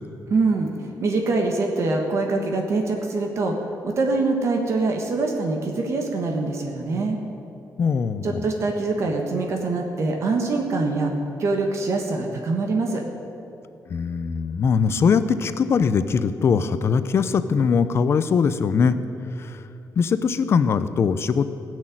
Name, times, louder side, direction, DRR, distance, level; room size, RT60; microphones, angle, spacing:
voice 1, 0.3-0.7 1.0-3.6 3.8-7.2 8.2-11.1 11.4-13.0, right 3 dB, 45° right, 2 dB, 1.4 m, -24 dB
voice 2, 7.8-8.4 13.9-19.0 19.4-19.6 20.0-21.5, left 6 dB, 40° left, 12 dB, 0.6 m, -21 dB
17.5 x 6.4 x 9.0 m, 2.9 s
wide cardioid pair, 175°, 7 cm